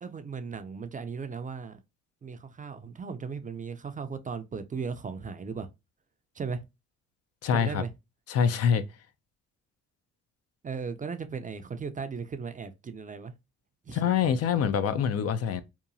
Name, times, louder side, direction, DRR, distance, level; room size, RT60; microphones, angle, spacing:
voice 1, 0.0-1.8 2.2-5.7 6.4-6.6 7.5-7.9 10.6-13.3 13.9-14.1, right 5 dB, 25° right, 0.4 m, -36 dB
voice 2, 7.4-7.8 8.3-8.8 13.9-15.6, left 7 dB, 55° left, 0.4 m, -25 dB
2.8 x 2.3 x 2.5 m
cardioid pair, 90°, 30 cm